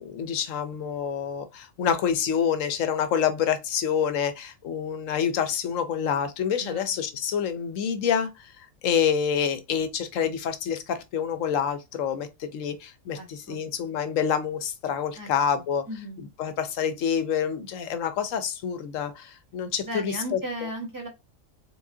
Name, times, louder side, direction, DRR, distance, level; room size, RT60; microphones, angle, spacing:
voice 1, 0.0-15.8 16.2-20.4, left 8 dB, 80° left, 1.1 m, -27 dB
voice 2, 6.6-7.0 13.1-13.6 15.1-15.3 15.9-16.2 19.8-21.1, right 1 dB, 15° right, 1.5 m, -35 dB
4.7 x 3.6 x 2.7 m
omnidirectional pair, 1.3 m